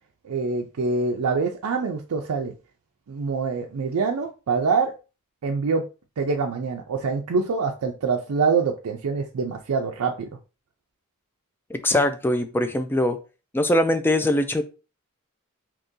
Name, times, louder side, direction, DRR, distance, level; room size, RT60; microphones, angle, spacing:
voice 1, 0.2-2.5 3.1-4.9 5.4-5.8 6.2-10.3, right 4 dB, 80° right, 2 dB, 0.4 m, -25 dB
voice 2, 11.7-13.2 13.5-14.6, left 1 dB, 10° left, 9 dB, 0.3 m, -22 dB
2.9 x 2.7 x 3.6 m, 0.32 s
head